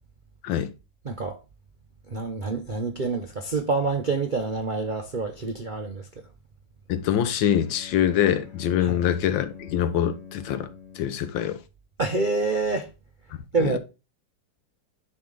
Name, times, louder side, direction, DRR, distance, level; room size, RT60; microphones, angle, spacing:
voice 1, 1.0-1.4 2.1-6.0 8.8-9.0 12.0-12.9 13.5-13.8, right 3 dB, 55° right, 0.5 m, -27 dB
voice 2, 6.9-10.7 10.9-11.6 13.6-13.8, left 10 dB, 80° left, 1.5 m, -24 dB
Bowed string instrument, 7.4-11.4, left 6 dB, 60° left, 1.8 m, -45 dB
10.5 x 3.7 x 3.8 m
omnidirectional pair, 2.1 m